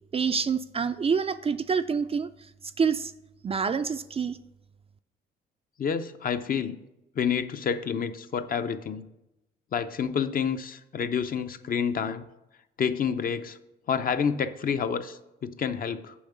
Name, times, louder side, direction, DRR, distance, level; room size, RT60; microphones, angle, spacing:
voice 1, 0.1-2.3 2.8-3.1 3.4-4.4, right 6 dB, 30° right, 11 dB, 0.4 m, -27 dB
voice 2, 5.8-6.8 7.2-9.1 9.7-12.3 12.8-13.6 13.9-16.1, left 7 dB, 45° left, 10 dB, 0.6 m, -29 dB
7.1 x 4.7 x 7.0 m, 0.91 s
cardioid pair, 90°, 20 cm